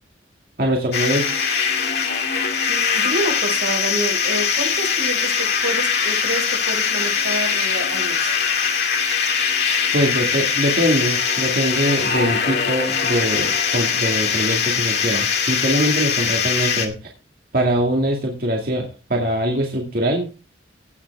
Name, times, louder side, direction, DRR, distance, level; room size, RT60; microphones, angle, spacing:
voice 1, 0.6-1.5 9.9-16.9 17.5-20.3, equal, 50° right, 0 dB, 2.2 m, -22 dB
sound 1, 0.9-16.9, left 6 dB, 60° left, 2.2 m, -21 dB
voice 2, 2.7-8.3, right 1 dB, 85° right, 2 dB, 5.9 m, -28 dB
17.0 x 7.2 x 3.5 m, 0.32 s
head